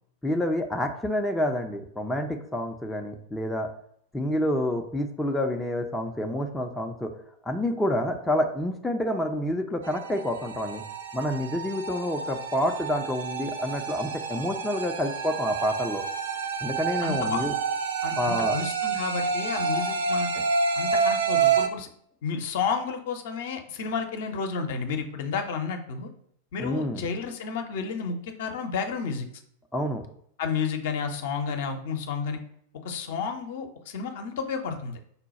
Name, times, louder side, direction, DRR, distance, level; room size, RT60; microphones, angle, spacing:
voice 1, 0.2-3.7 4.1-7.1 7.5-10.8 11.1-16.0 16.6-17.5 18.2-18.6 26.6-27.1 29.7-30.0, left 1 dB, 5° left, 2 dB, 0.5 m, -28 dB
sound 1, 9.8-21.7, right 5 dB, 65° right, 0.4 m, -29 dB
voice 2, 17.0-17.4 18.0-20.4 20.8-21.9 22.2-26.1 26.5-29.3 30.4-32.4 32.8-35.0, left 5 dB, 55° left, 5 dB, 0.6 m, -31 dB
5.5 x 2.2 x 4.1 m, 0.66 s
figure-of-eight pair, 90°, 0 cm